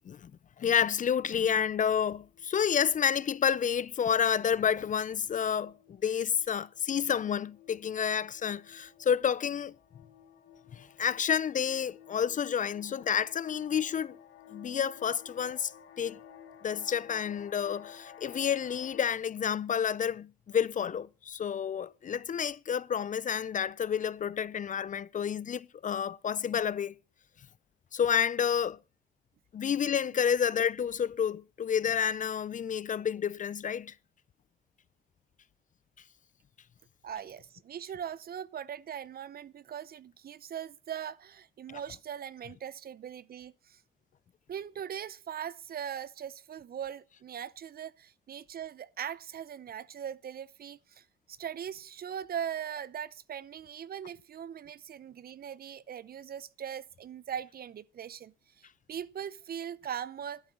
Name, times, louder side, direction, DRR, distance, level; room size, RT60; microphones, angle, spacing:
voice 1, 0.6-9.7 10.7-14.2 14.5-15.7 16.0-16.2 16.6-26.9 27.9-28.8 29.5-33.9 41.7-41.8, left 8 dB, 40° left, 0.5 m, -30 dB
sound 1, 2.2-2.5 2.8-19.1, left 8 dB, 75° left, 2.8 m, -54 dB
voice 2, 37.0-43.8 44.5-60.4, right 9 dB, 50° right, 0.7 m, -40 dB
11.5 x 8.3 x 6.2 m
cardioid pair, 90°, 20 cm